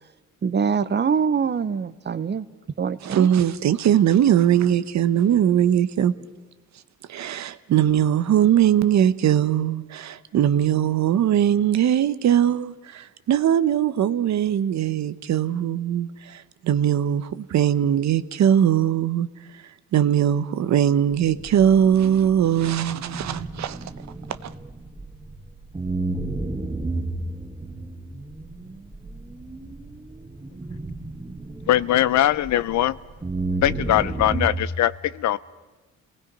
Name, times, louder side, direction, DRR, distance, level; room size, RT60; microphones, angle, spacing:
voice 1, 0.4-2.5 2.8-3.3, right 6 dB, 35° right, 0.9 m, -24 dB
voice 2, 3.0-6.1 7.1-19.3 19.9-23.8 24.4-24.5, right 10 dB, 65° right, 1.0 m, -20 dB
sound 1, 21.2-25.3 25.7-32.8 33.2-34.5, right 2 dB, 15° right, 2.6 m, -32 dB
voice 3, 31.7-33.0 33.6-35.4, left 12 dB, 70° left, 0.7 m, -21 dB
29.0 x 19.0 x 5.5 m
cardioid pair, 90°, 30 cm